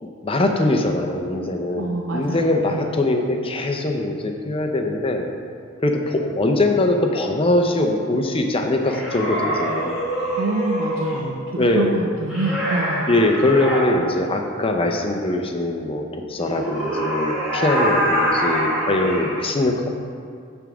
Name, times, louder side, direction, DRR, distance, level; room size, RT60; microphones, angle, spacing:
voice 1, 0.0-5.3 5.8-10.0 11.6-12.0 13.1-20.0, left 2 dB, 25° left, 3 dB, 0.6 m, -22 dB
voice 2, 1.8-2.9 10.4-13.1, right 2 dB, 65° right, -1 dB, 0.5 m, -26 dB
sound 1, 8.9-11.3 12.3-13.8 16.4-19.3, equal, 5° right, 2.1 m, -24 dB
9.4 x 3.6 x 6.1 m, 2.3 s
head